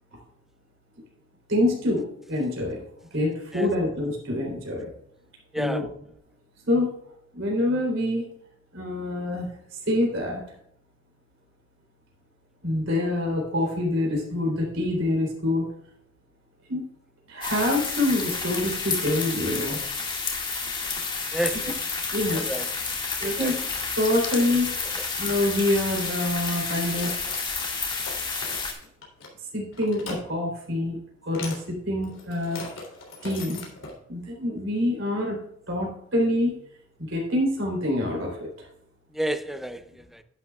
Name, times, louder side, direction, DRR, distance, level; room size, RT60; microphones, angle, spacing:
voice 1, 1.5-2.8 3.1-4.9 5.6-5.8 6.7-6.9 7.3-8.2 8.7-9.5 9.9-10.4 12.6-15.6 16.7-16.9 17.3-19.8 22.1-22.5 23.2-23.5 24.0-24.7 25.2-27.2 29.5-32.6 33.2-33.7 34.1-35.4 35.7-36.5 37.1-38.5, left 1 dB, 75° right, 3.5 m, -26 dB
voice 2, 5.5-5.8 21.3-21.8 22.3-22.7 23.2-23.6 39.1-40.2, right 1 dB, ahead, 0.5 m, -30 dB
sound 1, 17.4-28.7, left 4 dB, 25° left, 2.0 m, -30 dB
sound 2, 26.9-27.7 27.9-29.3 29.7-30.2 31.3-31.6 32.0-33.9, left 3 dB, 75° left, 3.3 m, -39 dB
11.0 x 9.5 x 2.4 m
head